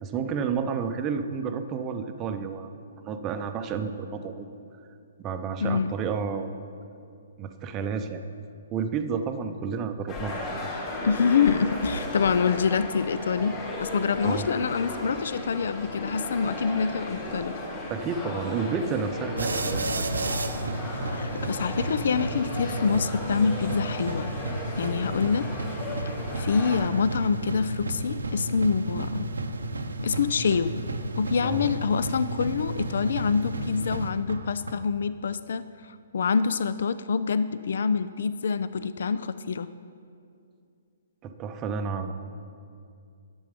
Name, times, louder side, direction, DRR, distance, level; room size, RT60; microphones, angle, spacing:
voice 1, 0.0-2.7 3.0-4.5 5.2-6.5 7.4-8.2 8.7-10.5 14.2-14.5 17.9-20.1 31.4-31.7 41.2-42.1, right 6 dB, 25° right, 6 dB, 0.6 m, -31 dB
voice 2, 5.6-5.9 11.0-17.5 21.1-24.3 24.8-25.5 26.4-29.3 30.0-30.7 31.2-35.6 36.1-39.7, left 5 dB, 65° left, 14 dB, 0.3 m, -26 dB
sound 1, 10.1-26.9, left 1 dB, 30° left, 2.3 m, -35 dB
sound 2, 19.4-34.7, right 2 dB, 90° right, 0.7 m, -32 dB
11.0 x 7.0 x 5.2 m, 2.4 s
hypercardioid pair, 135°, 0 cm